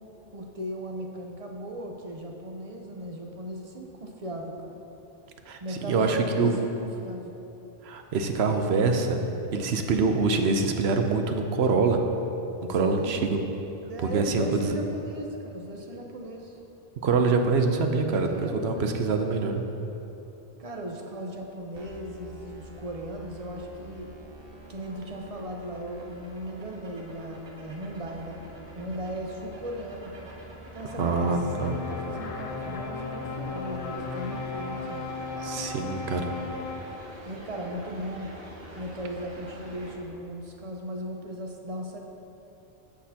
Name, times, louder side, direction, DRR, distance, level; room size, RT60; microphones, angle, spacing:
voice 1, 0.3-4.8 5.6-7.3 12.7-13.3 13.8-16.6 18.1-19.0 20.6-24.1 24.7-28.4 28.7-30.3 30.7-35.0 37.2-38.4 38.8-42.0, right 1 dB, 40° right, 1 dB, 0.8 m, -37 dB
voice 2, 5.5-6.6 7.8-9.2 9.5-12.0 12.7-13.4 14.1-14.8 17.0-19.6 31.0-31.7 35.4-36.2, right 4 dB, 90° right, 5 dB, 1.0 m, -25 dB
sound 1, 21.7-39.9, right 1 dB, 65° right, 1.4 m, -46 dB
sound 2, 31.0-36.8, left 4 dB, 45° left, 0.5 m, -35 dB
13.5 x 6.3 x 2.8 m, 3.0 s
omnidirectional pair, 1.0 m